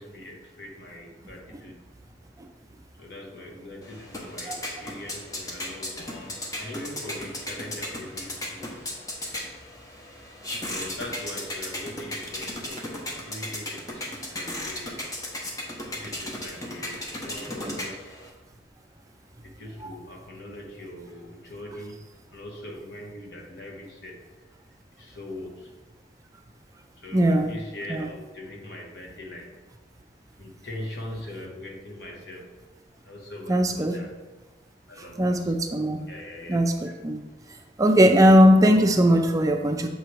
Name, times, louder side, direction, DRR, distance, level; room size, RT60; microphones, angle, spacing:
voice 1, 0.0-1.8 3.0-8.9 10.7-15.0 15.9-18.2 19.4-22.0 22.3-24.2 25.0-25.7 27.0-29.6 30.4-32.5 33.0-34.3 34.9-35.5 36.0-36.9, left 1 dB, 65° left, -1 dB, 1.3 m, -41 dB
sound 1, 3.8-18.3, left 1 dB, 20° left, 0.8 m, -36 dB
voice 2, 27.1-27.5 27.9-28.1 33.5-34.0 35.2-36.0 36.5-37.2 37.8-39.9, equal, 20° right, 5 dB, 0.4 m, -19 dB
6.6 x 3.1 x 4.7 m, 1.2 s
head